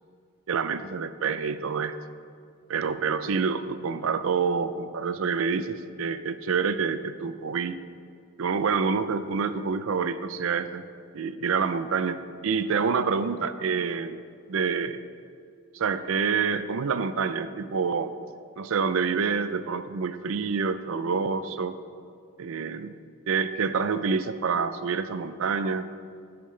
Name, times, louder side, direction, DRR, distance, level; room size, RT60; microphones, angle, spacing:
voice 1, 0.5-2.0 2.7-7.8 8.4-10.8 11.1-14.2 14.5-15.0 15.7-18.1 18.6-21.8 22.4-23.0 23.3-25.9, right 5 dB, 70° right, 12 dB, 0.5 m, -27 dB
13.5 x 8.7 x 3.3 m, 2.2 s
head